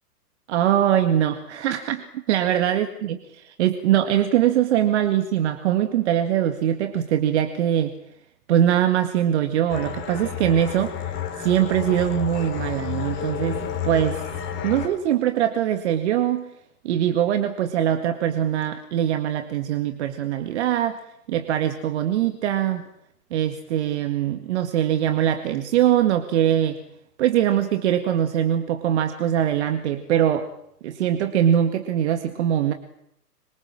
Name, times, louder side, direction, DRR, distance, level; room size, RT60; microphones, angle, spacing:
voice 1, 0.5-3.2 3.5-8.0 8.5-14.2 14.6-16.5 16.8-21.0 21.3-22.8 23.3-26.8 27.2-30.5 30.8-32.7, right 10 dB, 45° right, 8 dB, 2.0 m, -22 dB
sound 1, 9.7-14.9, left 8 dB, 25° left, 5.2 m, -31 dB
26.0 x 24.0 x 7.5 m, 0.76 s
hypercardioid pair, 135°, 47 cm